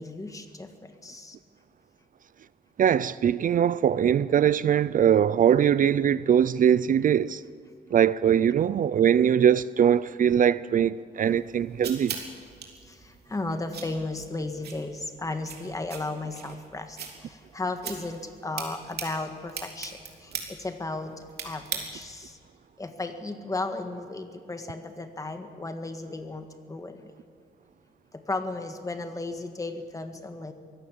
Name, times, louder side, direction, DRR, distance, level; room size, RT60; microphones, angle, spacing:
voice 1, 0.0-1.4 12.9-21.1 21.4-22.4 22.8-27.1 28.1-30.5, left 2 dB, 20° left, 1.6 m, -35 dB
voice 2, 2.8-7.4 7.9-12.2, right 9 dB, 55° right, 0.4 m, -21 dB
sound 1, 11.2-22.3, right 6 dB, 75° right, 3.3 m, -41 dB
23.5 x 16.5 x 7.4 m
wide cardioid pair, 145°, 17 cm